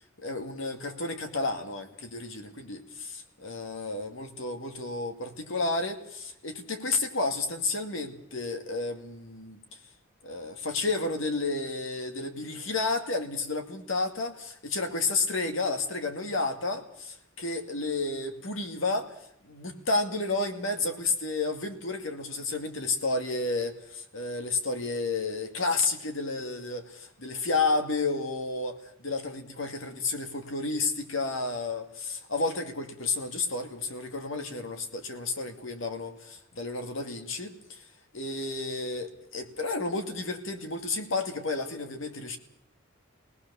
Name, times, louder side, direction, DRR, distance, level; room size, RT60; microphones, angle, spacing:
voice 1, 0.2-9.6 10.2-19.1 19.4-37.9 38.1-42.4, left 3 dB, 70° left, 5 dB, 2.3 m, -31 dB
22.5 x 18.5 x 7.0 m, 0.74 s
head